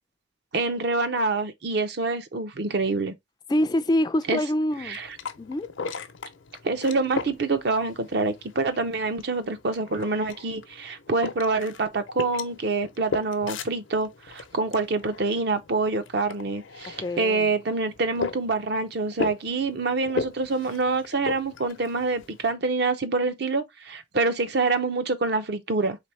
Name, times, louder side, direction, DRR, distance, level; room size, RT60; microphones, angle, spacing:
voice 1, 0.5-3.1 4.3-4.4 4.9-5.1 6.6-26.0, right 3 dB, 55° right, 0.6 m, -26 dB
voice 2, 3.5-5.0 5.4-5.7 17.0-17.5, left 1 dB, 20° left, 0.3 m, -25 dB
sound 1, 4.7-22.5, left 4 dB, 80° left, 0.6 m, -38 dB
4.1 x 3.4 x 3.2 m
head